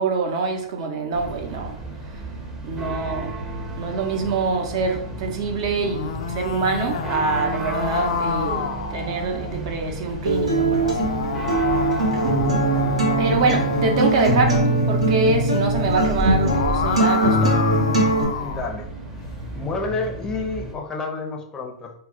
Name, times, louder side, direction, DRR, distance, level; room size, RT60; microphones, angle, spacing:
voice 1, 0.0-1.8 2.6-3.3 3.8-11.1 13.2-14.6 14.9-17.6, right 4 dB, 60° right, 3 dB, 0.7 m, -25 dB
sound 1, 1.1-20.7, right 2 dB, 20° right, 0.7 m, -33 dB
sound 2, 5.7-9.6 10.6-14.8 16.2-18.7, left 6 dB, 75° left, 0.3 m, -29 dB
Acoustic guitar, 10.3-18.2, right 1 dB, 90° right, 1.0 m, -21 dB
voice 2, 18.4-18.9 19.5-21.9, left 3 dB, 20° left, 2 dB, 0.5 m, -29 dB
2.3 x 2.0 x 3.7 m, 0.67 s
hypercardioid pair, 115°, 3 cm